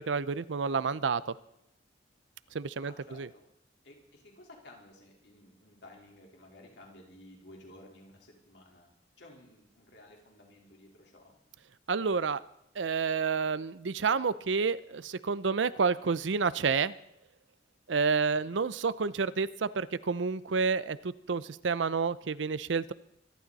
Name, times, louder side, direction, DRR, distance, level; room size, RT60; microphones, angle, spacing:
voice 1, 0.0-1.3 2.5-3.3 11.9-12.4 12.8-16.9 17.9-22.9, right 5 dB, 90° right, 17 dB, 0.6 m, -29 dB
voice 2, 2.8-3.4 3.8-8.9 9.2-11.4, left 1 dB, 70° left, -1 dB, 4.0 m, -54 dB
25.0 x 11.5 x 4.1 m, 0.80 s
head